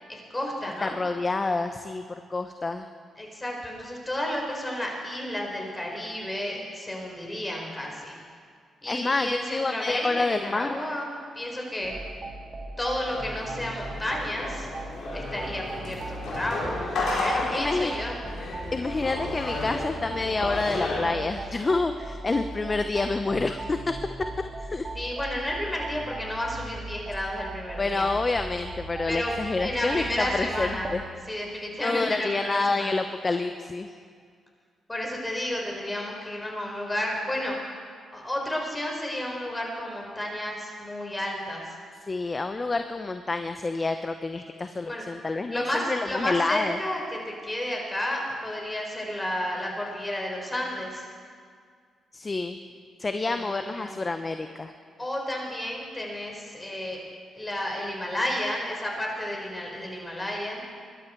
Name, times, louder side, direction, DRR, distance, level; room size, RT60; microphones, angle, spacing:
voice 1, 0.1-0.9 3.2-8.2 8.8-12.0 12.8-14.7 15.1-18.2 24.9-28.1 29.1-31.0 31.3-33.0 34.9-37.6 38.1-41.8 44.8-45.0 45.5-51.1 53.2-54.0 55.0-57.0 57.3-60.6, left 1 dB, 20° left, -1 dB, 5.0 m, -32 dB
voice 2, 0.8-2.0 2.3-2.9 8.9-10.8 17.5-18.0 18.7-23.9 24.6-24.9 27.8-31.0 31.8-33.9 42.1-46.8 52.1-52.6 53.0-54.7, left 3 dB, 35° left, 8 dB, 0.8 m, -28 dB
sound 1, 11.8-31.0, right 2 dB, 40° right, 1.9 m, -38 dB
sound 2, 13.1-21.0, left 2 dB, 65° left, 4.4 m, -33 dB
22.5 x 12.0 x 4.6 m, 2.1 s
supercardioid pair, 50°, 0 cm